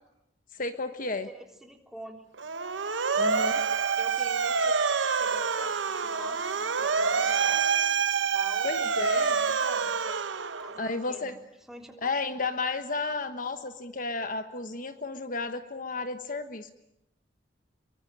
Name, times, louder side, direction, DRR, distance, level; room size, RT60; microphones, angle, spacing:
voice 1, 0.5-1.3 3.1-3.6 8.6-9.3 10.8-11.4 12.0-16.7, left 3 dB, 45° left, 9 dB, 1.3 m, -32 dB
voice 2, 1.2-2.3 3.9-7.6 8.3-10.2 10.6-11.4 11.7-12.1, equal, ahead, 2 dB, 3.6 m, -46 dB
Motor vehicle (road) / Siren, 2.4-11.0, right 5 dB, 80° right, 1.0 m, -27 dB
26.0 x 23.5 x 8.9 m, 0.84 s
head